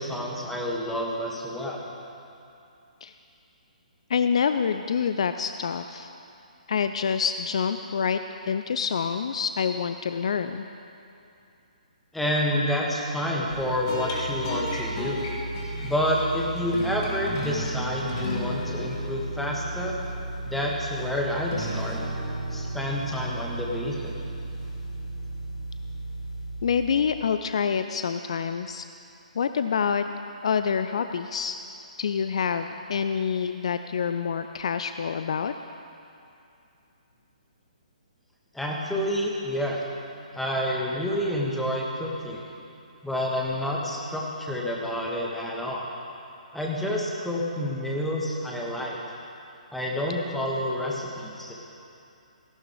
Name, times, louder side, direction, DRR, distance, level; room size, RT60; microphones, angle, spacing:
voice 1, 0.0-1.8 12.1-15.3 15.8-20.0 20.4-22.0 22.5-24.1 38.5-39.8 40.3-42.4 43.0-45.9 46.5-49.0 49.7-51.5, equal, 5° left, -3 dB, 1.6 m, -28 dB
voice 2, 4.1-6.1 6.7-10.6 26.6-28.8 29.3-30.1 30.4-31.6 32.0-35.5, left 6 dB, 50° left, 9 dB, 0.4 m, -27 dB
sound 1, 13.5-27.1, right 1 dB, 35° left, 2.6 m, -33 dB
17.5 x 14.5 x 3.7 m, 2.7 s
figure-of-eight pair, 130°, 4 cm